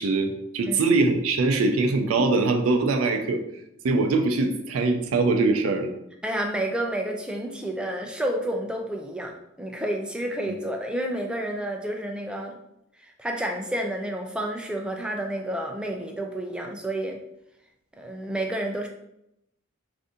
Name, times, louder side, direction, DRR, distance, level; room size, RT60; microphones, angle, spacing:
voice 1, 0.0-3.4 3.8-5.9, right 3 dB, 75° right, 5 dB, 0.4 m, -22 dB
voice 2, 6.2-12.6 13.0-17.2 18.0-18.9, right 1 dB, 5° right, 2 dB, 0.4 m, -30 dB
2.6 x 2.6 x 3.6 m, 0.80 s
head